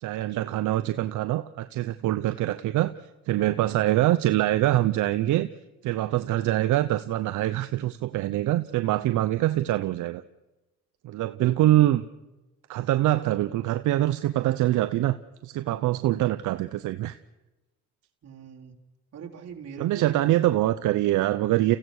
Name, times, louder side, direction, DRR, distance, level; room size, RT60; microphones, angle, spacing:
voice 1, 0.0-5.5 5.8-10.2 11.0-12.0 12.7-15.2 15.4-17.2 19.8-21.8, right 15 dB, 85° right, 11 dB, 0.7 m, -24 dB
voice 2, 18.2-18.8 19.1-20.2, right 7 dB, 60° right, -1 dB, 3.5 m, -41 dB
30.0 x 15.5 x 6.4 m, 1.0 s
cardioid pair, 90°, 30 cm